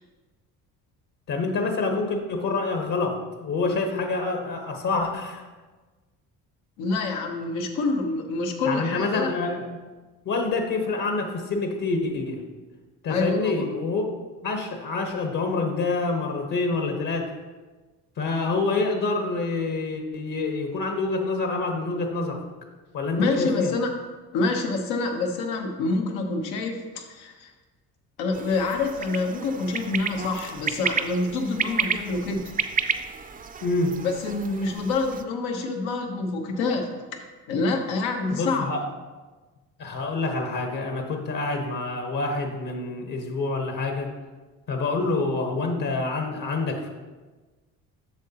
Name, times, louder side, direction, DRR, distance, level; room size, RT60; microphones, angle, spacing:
voice 1, 1.3-5.4 8.6-9.7 10.2-12.4 13.0-14.0 14.4-17.3 18.2-22.4 22.9-23.7 33.6-34.0 38.3-38.8 39.8-44.1 44.7-46.9, left 3 dB, 55° left, 3 dB, 1.2 m, -27 dB
voice 2, 6.8-9.3 13.1-13.5 18.2-18.5 23.2-23.9 24.3-27.5 28.2-32.6 34.0-37.0 37.5-38.7, left 3 dB, 85° left, 3 dB, 1.0 m, -27 dB
sound 1, 28.3-35.2, right 6 dB, 25° right, 0.4 m, -31 dB
8.0 x 6.4 x 2.9 m, 1.3 s
supercardioid pair, 75°, 38 cm